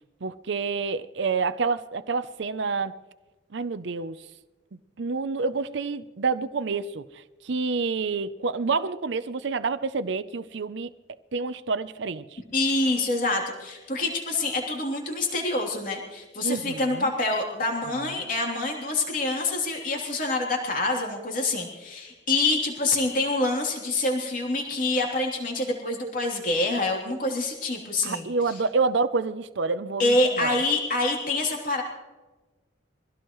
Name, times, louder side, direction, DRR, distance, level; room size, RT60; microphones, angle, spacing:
voice 1, 0.2-2.9 3.5-4.2 5.0-7.0 7.4-10.9 11.3-12.4 16.4-17.1 28.0-30.6, right 4 dB, 70° right, 0.6 m, -28 dB
voice 2, 12.5-28.5 30.0-31.8, left 2 dB, 45° left, 3.1 m, -26 dB
24.0 x 16.5 x 3.1 m
head